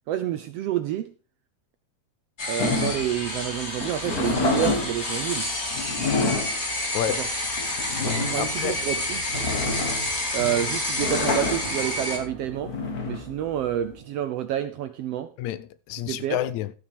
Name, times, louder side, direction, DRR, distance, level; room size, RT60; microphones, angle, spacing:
voice 1, 0.1-1.1 2.5-5.5 7.2-7.3 8.0-9.2 10.3-12.8 13.0-15.3 16.1-16.4, right 11 dB, 75° right, 1.5 m, -28 dB
sound 1, 2.4-12.2, left 1 dB, 25° left, 2.0 m, -29 dB
sound 2, 2.6-14.0, left 3 dB, 40° left, 1.5 m, -29 dB
sound 3, 8.2-14.7, right 5 dB, 60° right, 0.9 m, -41 dB
voice 2, 8.4-8.8 15.4-16.7, left 12 dB, 80° left, 1.9 m, -29 dB
14.5 x 6.0 x 5.0 m
omnidirectional pair, 3.4 m